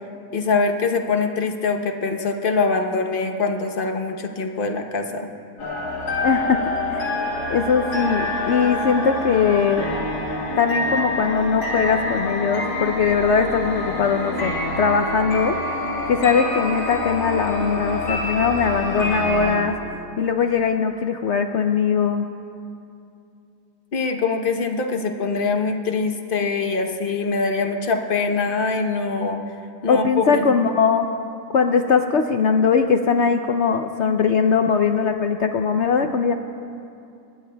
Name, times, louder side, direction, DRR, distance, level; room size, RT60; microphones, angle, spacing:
voice 1, 0.3-5.3 23.9-29.4 29.8-30.5, left 4 dB, 40° left, 4 dB, 0.9 m, -23 dB
sound 1, 5.6-19.6, left 2 dB, 85° left, 2.5 m, -26 dB
voice 2, 6.2-7.1 7.5-9.9 10.6-19.8 20.2-22.3 29.9-31.1 31.5-36.3, left 6 dB, 70° left, 6 dB, 0.6 m, -20 dB
24.0 x 19.5 x 2.2 m, 2.6 s
omnidirectional pair, 1.7 m